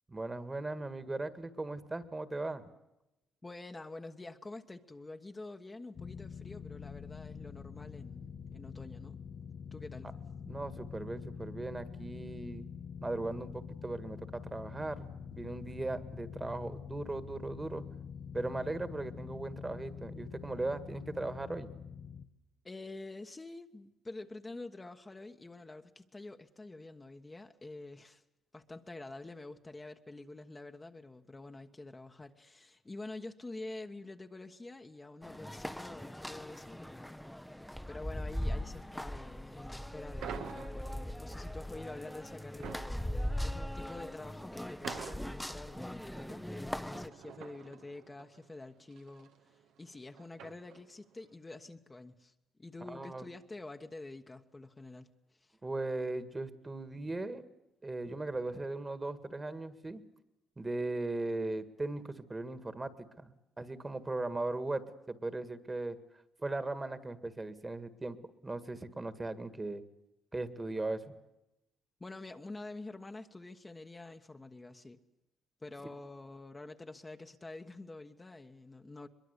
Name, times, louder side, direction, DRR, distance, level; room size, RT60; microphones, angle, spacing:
voice 1, 0.1-2.6 10.5-12.7 13.0-17.8 18.3-21.7 52.8-53.3 55.6-57.4 57.8-60.0 60.6-66.0 66.4-68.2 68.4-69.8 70.3-71.1, right 2 dB, 20° right, 1.9 m, -38 dB
voice 2, 3.4-9.2 9.7-10.1 22.6-28.2 28.5-37.3 37.9-52.3 52.6-55.6 72.0-75.0 75.6-79.1, left 2 dB, 20° left, 1.3 m, -47 dB
sound 1, 6.0-22.3, left 6 dB, 50° left, 1.3 m, -46 dB
sound 2, 35.2-47.1, left 1 dB, 5° left, 0.9 m, -40 dB
sound 3, 40.2-51.1, right 8 dB, 85° right, 2.0 m, -50 dB
22.5 x 22.5 x 8.3 m
cardioid pair, 90°, 0 cm